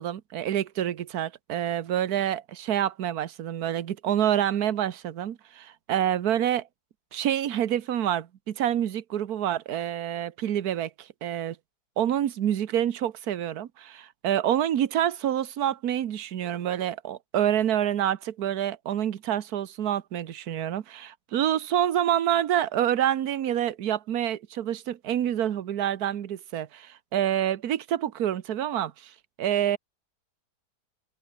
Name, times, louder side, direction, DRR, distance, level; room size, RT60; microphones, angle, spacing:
voice 1, 0.0-6.7 7.1-11.6 12.0-29.8, right 10 dB, 65° right, 1.5 m, -27 dB
omnidirectional pair, 1.8 m